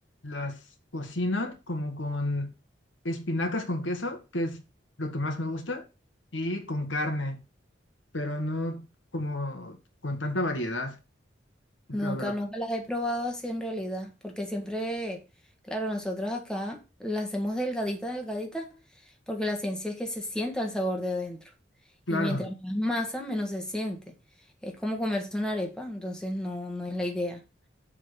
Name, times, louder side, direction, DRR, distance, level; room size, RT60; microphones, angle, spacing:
voice 1, 0.2-0.6 0.9-2.5 3.0-4.6 5.0-5.9 6.3-7.4 8.1-8.9 9.1-9.8 10.0-11.0 11.9-12.3 22.1-22.5, left 1 dB, 90° left, 1.7 m, -31 dB
voice 2, 11.9-15.2 15.7-18.7 19.3-21.4 22.1-24.1 24.6-27.4, left 1 dB, 5° left, 1.5 m, -31 dB
7.2 x 4.0 x 6.6 m
head